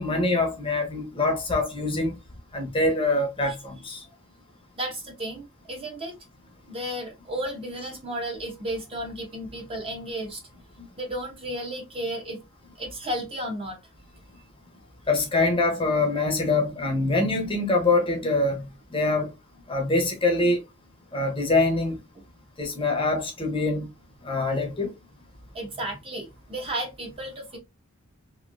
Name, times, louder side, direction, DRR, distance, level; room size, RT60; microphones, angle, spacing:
voice 1, 0.0-2.2 2.5-4.0 15.1-18.7 18.9-19.3 19.7-20.6 21.1-22.0 22.6-23.9 24.2-24.9, left 2 dB, 25° left, 0.8 m, -24 dB
voice 2, 4.8-6.2 6.7-10.4 11.0-12.4 12.8-13.8 25.5-27.6, right 1 dB, 25° right, 0.9 m, -33 dB
3.0 x 2.7 x 2.5 m
head